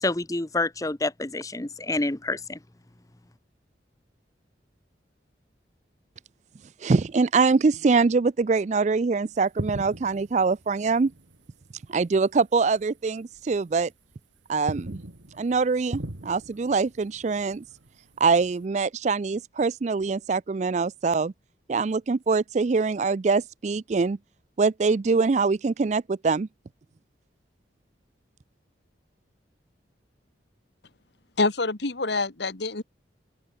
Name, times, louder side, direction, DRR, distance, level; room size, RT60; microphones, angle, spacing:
voice 1, 0.0-2.6, left 2 dB, 20° left, 0.8 m, -28 dB
voice 2, 6.8-11.1 11.9-13.9 14.5-15.0 15.4-17.6 18.2-21.3 21.7-24.2 24.6-26.5, right 4 dB, 40° right, 0.4 m, -24 dB
sound 1, 9.3-12.3 12.6-12.8 13.3-14.1 14.5-18.6, right 1 dB, 90° right, 2.0 m, -40 dB
voice 3, 31.4-32.8, left 3 dB, 70° left, 1.6 m, -26 dB
head